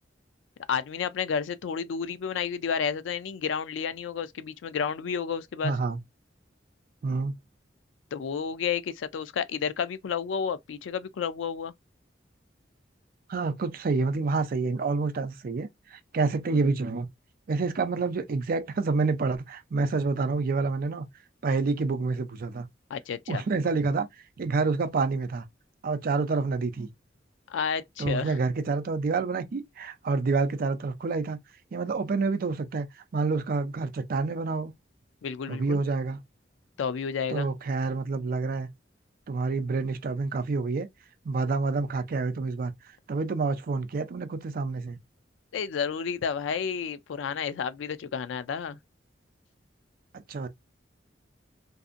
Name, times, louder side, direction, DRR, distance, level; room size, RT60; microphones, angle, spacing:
voice 1, 0.7-5.7 8.1-11.7 22.9-23.4 27.5-28.4 35.2-35.8 36.8-37.5 45.5-48.8, left 6 dB, 85° left, 0.4 m, -31 dB
voice 2, 5.6-6.0 7.0-7.3 13.3-17.1 17.5-21.1 21.4-22.7 23.3-24.1 24.4-25.5 25.8-26.9 28.0-31.4 31.7-34.7 35.5-36.2 37.3-38.7 39.3-40.9 41.2-42.7 43.1-45.0 50.3-50.5, right 4 dB, 50° right, 0.4 m, -28 dB
2.6 x 2.4 x 2.4 m
head